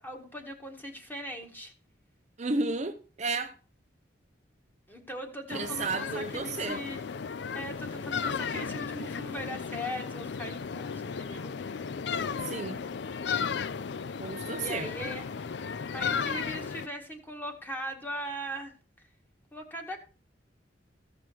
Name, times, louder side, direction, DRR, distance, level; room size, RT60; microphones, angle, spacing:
voice 1, 0.0-1.7 4.9-7.0 7.5-11.5 14.6-15.3 15.9-18.7 19.5-20.0, equal, 10° left, 1.8 m, -39 dB
voice 2, 2.4-3.5 5.5-6.8 12.4-12.8 14.2-14.9, right 3 dB, 35° right, 0.6 m, -32 dB
sound 1, 5.5-16.9, left 6 dB, 65° left, 0.4 m, -35 dB
15.5 x 6.2 x 4.6 m
head